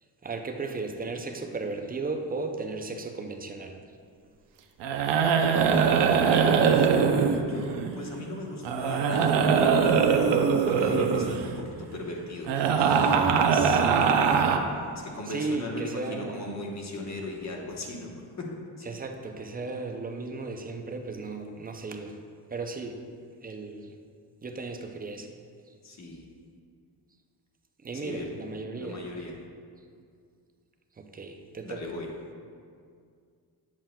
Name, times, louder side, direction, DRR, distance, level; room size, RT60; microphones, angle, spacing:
voice 1, 0.2-3.8 13.5-14.3 15.3-16.5 18.8-22.2 22.5-23.0 23.4-24.0 24.4-25.3 27.8-29.0 31.0-31.8, right 3 dB, 25° right, 4 dB, 0.4 m, -35 dB
sound 1, 4.8-8.2 8.6-11.6 12.5-14.6, right 6 dB, 85° right, 0.6 m, -22 dB
voice 2, 6.0-13.5 14.9-18.9 25.8-26.3 27.9-28.3 28.8-29.3 31.6-32.1, left 2 dB, 40° left, -1 dB, 1.0 m, -38 dB
7.4 x 7.3 x 2.2 m, 2.2 s
cardioid pair, 120°, 41 cm